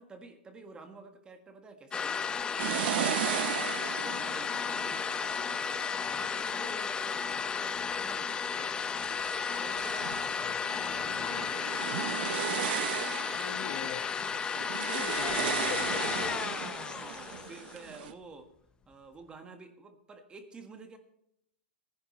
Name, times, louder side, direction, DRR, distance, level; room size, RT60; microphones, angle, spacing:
voice 1, 0.0-5.1 5.4-5.7 6.1-8.8 9.6-12.2 16.8-18.5 18.9-21.0, right 3 dB, 15° right, 1.6 m, -50 dB
sound 1, 1.9-17.9, left 6 dB, 15° left, 0.6 m, -33 dB
sound 2, 2.6-7.3 7.9-8.5 8.9-18.1, right 12 dB, 60° right, 0.8 m, -37 dB
voice 2, 10.9-11.5 13.3-14.1 14.8-16.4, left 9 dB, 35° left, 1.2 m, -42 dB
18.0 x 10.5 x 3.1 m
hypercardioid pair, 135°, 6 cm